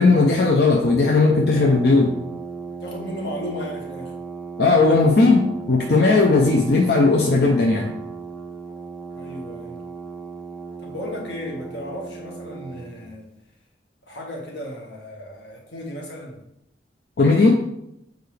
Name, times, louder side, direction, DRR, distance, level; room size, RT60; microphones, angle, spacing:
voice 1, 0.0-2.1 4.6-7.9 17.2-17.5, left 3 dB, 65° left, 0.6 m, -17 dB
Brass instrument, 0.8-13.1, right 4 dB, 5° left, 0.8 m, -36 dB
voice 2, 2.8-4.1 9.1-9.8 10.8-13.3 14.1-16.4, left 1 dB, 85° left, 1.5 m, -34 dB
6.8 x 4.6 x 3.3 m
head